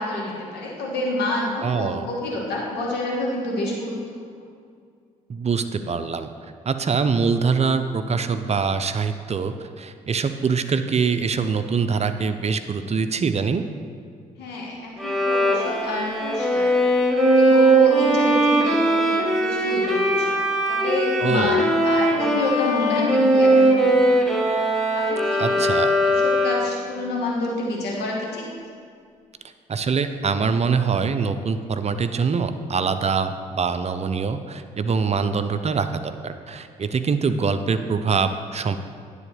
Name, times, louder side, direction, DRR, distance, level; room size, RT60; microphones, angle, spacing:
voice 1, 0.0-4.0 14.4-16.7 17.2-20.4 20.7-24.3 25.1-25.6 26.0-28.5, left 2 dB, 70° left, -2 dB, 2.1 m, -28 dB
voice 2, 1.6-2.1 5.3-6.3 6.7-13.6 21.2-21.6 25.4-25.9 29.7-38.8, right 5 dB, 35° right, 10 dB, 0.6 m, -24 dB
Bowed string instrument, 15.0-26.8, right 1 dB, ahead, 1.7 m, -20 dB
9.8 x 4.3 x 6.9 m, 2.2 s
hypercardioid pair, 45°, 18 cm